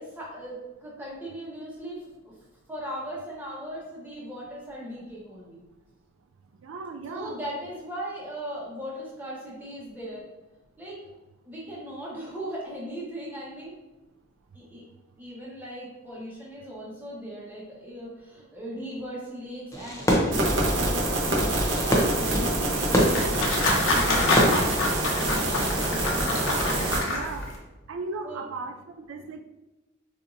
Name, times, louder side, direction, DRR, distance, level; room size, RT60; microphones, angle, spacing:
voice 1, 0.0-2.3 2.7-5.6 7.1-10.2 10.8-11.0 11.4-13.7 14.5-14.8 15.2-20.0 20.7-26.6 28.2-28.5, equal, 10° right, -6 dB, 1.1 m, -38 dB
voice 2, 6.6-7.4 27.1-27.5 27.9-29.4, right 3 dB, 85° right, 5 dB, 0.4 m, -36 dB
Fireworks, 19.7-25.7, equal, 15° left, 0.7 m, -27 dB
sound 1, 20.3-27.0, right 1 dB, 65° right, 1.0 m, -26 dB
sound 2, 22.6-27.6, left 2 dB, 75° left, 0.9 m, -27 dB
6.7 x 2.7 x 2.7 m, 1.0 s
head